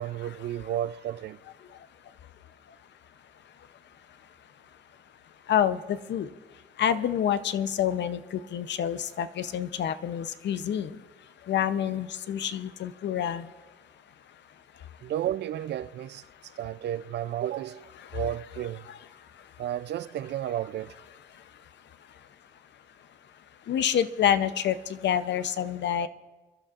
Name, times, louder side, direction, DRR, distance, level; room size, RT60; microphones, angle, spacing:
voice 1, 0.0-1.4 15.0-16.2 16.6-18.9 19.6-21.0, right 11 dB, 60° right, 0.4 m, -32 dB
voice 2, 5.5-6.3 6.8-10.9 11.5-13.5 18.9-19.0 23.7-26.1, left 9 dB, 65° left, 0.7 m, -27 dB
28.0 x 11.5 x 2.5 m
cardioid pair, 90°, 20 cm